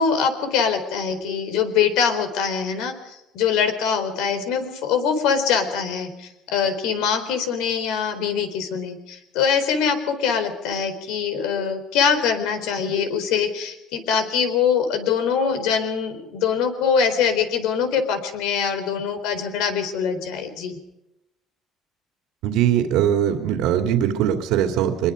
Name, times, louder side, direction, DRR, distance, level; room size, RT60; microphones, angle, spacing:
voice 1, 0.0-20.8, left 6 dB, 85° left, 9 dB, 4.1 m, -23 dB
voice 2, 22.4-25.1, right 10 dB, 90° right, 5 dB, 2.6 m, -21 dB
24.5 x 22.0 x 5.2 m, 0.89 s
cardioid pair, 145°, 0 cm